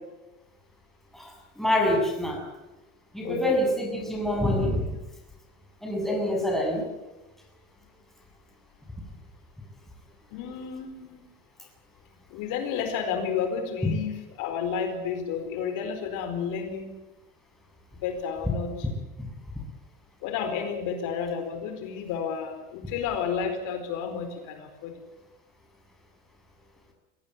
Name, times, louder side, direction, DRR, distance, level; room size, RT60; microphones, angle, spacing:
voice 1, 1.1-2.4 3.1-4.9 5.8-6.9 13.8-13.9 19.2-19.3, left 1 dB, ahead, 0 dB, 7.3 m, -26 dB
voice 2, 3.2-3.7 10.3-11.2 12.3-16.9 18.0-18.9 20.2-25.0, left 7 dB, 60° left, 6 dB, 4.6 m, -31 dB
23.5 x 17.5 x 9.7 m, 1.1 s
cardioid pair, 145°, 36 cm